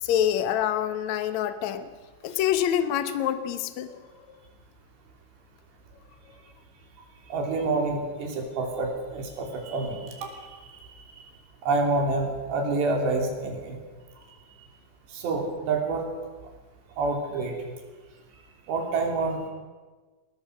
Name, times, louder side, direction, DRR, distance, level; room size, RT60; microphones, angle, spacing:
voice 1, 0.0-1.9 2.2-4.0 4.3-4.4, left 10 dB, 85° left, 10 dB, 1.6 m, -26 dB
voice 2, 7.3-10.6 11.0-11.1 11.6-13.8 15.1-16.1 17.0-17.6 18.7-19.5, right 3 dB, 75° right, 2 dB, 5.2 m, -28 dB
20.5 x 19.5 x 6.4 m, 1.3 s
omnidirectional pair, 5.0 m